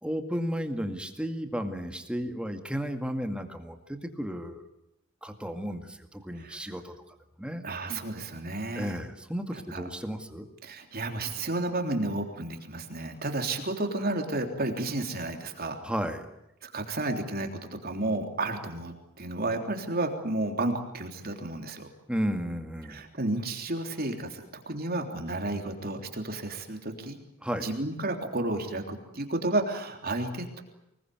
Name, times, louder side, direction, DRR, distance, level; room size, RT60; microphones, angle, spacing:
voice 1, 0.0-4.6 5.2-6.9 7.4-7.6 8.8-10.5 15.8-16.3 22.1-23.0 27.4-27.7, equal, 5° right, 6 dB, 2.1 m, -33 dB
voice 2, 7.6-9.0 9.5-9.8 10.6-15.8 16.6-17.5 17.8-21.9 22.9-27.2 27.6-30.6, right 2 dB, 45° right, 4 dB, 3.4 m, -32 dB
25.5 x 20.5 x 9.4 m, 0.86 s
head